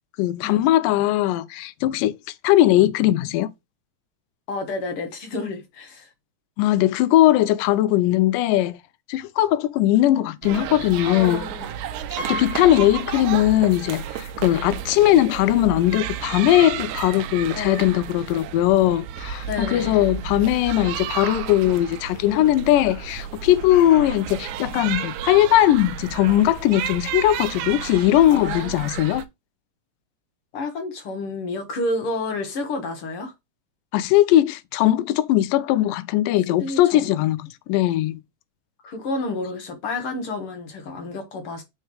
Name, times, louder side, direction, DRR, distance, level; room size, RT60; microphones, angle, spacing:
voice 1, 0.2-2.2 2.4-3.5 6.6-8.8 9.1-11.5 12.3-29.3 33.9-38.2, left 14 dB, 85° left, 2.2 m, -19 dB
voice 2, 4.5-6.1 11.1-11.8 17.5-18.0 19.5-20.0 28.3-28.9 30.5-33.3 36.6-37.0 38.8-41.6, left 2 dB, 60° left, 1.6 m, -30 dB
sound 1, 10.4-29.2, right 9 dB, 75° right, 1.8 m, -32 dB
Piano, 12.2-14.0 14.3-14.4 15.6-15.7 16.0-16.2, right 1 dB, 55° right, 1.4 m, -36 dB
4.5 x 4.5 x 4.9 m
omnidirectional pair, 3.8 m